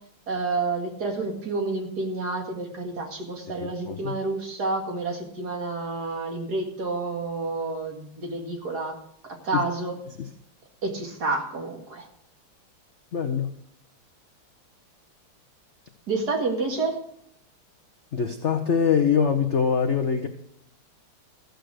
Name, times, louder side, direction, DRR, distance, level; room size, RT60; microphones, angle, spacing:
voice 1, 0.3-9.0 9.2-10.0 10.8-12.1 16.1-17.0, right 3 dB, 50° right, 2 dB, 2.5 m, -29 dB
voice 2, 3.5-4.2 9.5-9.6 10.2-10.3 13.1-13.5 18.1-20.3, left 6 dB, 80° left, 5 dB, 0.6 m, -24 dB
14.5 x 8.0 x 6.5 m, 0.73 s
omnidirectional pair, 2.4 m